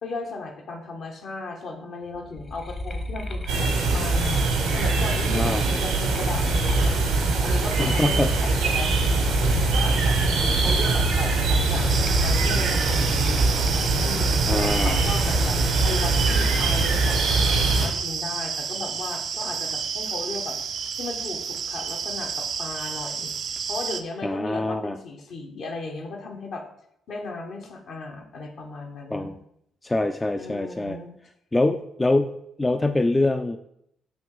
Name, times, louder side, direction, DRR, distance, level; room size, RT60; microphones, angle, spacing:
voice 1, 0.0-7.0 7.4-8.9 9.4-10.2 10.4-13.5 14.0-15.6 15.8-20.6 21.0-23.3 23.7-26.6 27.1-29.3 30.4-31.1, left 3 dB, 60° left, 2 dB, 1.0 m, -36 dB
sound 1, 2.1-8.4 8.7-15.7 16.1-16.8, left 1 dB, 40° left, 1.1 m, -32 dB
sound 2, 3.5-17.9, right 3 dB, 85° right, 1.3 m, -22 dB
voice 2, 5.3-5.7 7.8-8.4 14.5-15.0 24.2-25.0 29.1-29.4 29.8-31.0 31.5-33.6, left 2 dB, 20° left, 8 dB, 0.4 m, -24 dB
sound 3, 11.9-24.0, right 6 dB, 60° right, 0.5 m, -31 dB
6.9 x 3.0 x 4.7 m, 0.76 s
hypercardioid pair, 50°, 0 cm